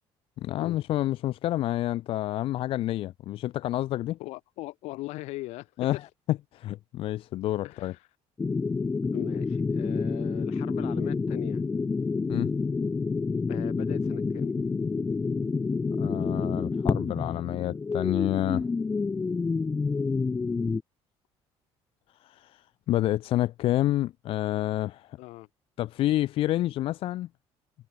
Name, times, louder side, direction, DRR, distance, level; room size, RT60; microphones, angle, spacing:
voice 1, 0.4-4.2 5.8-7.9 12.3-12.5 16.0-18.7 22.2-25.2 25.8-27.3, left 14 dB, 55° left, 0.5 m, -29 dB
voice 2, 4.2-5.7 7.6-8.0 9.1-11.6 13.5-14.6 25.2-25.5, left 20 dB, 85° left, 4.3 m, -39 dB
sound 1, 8.4-20.8, left 4 dB, 15° left, 0.8 m, -28 dB
cardioid pair, 145°, 11 cm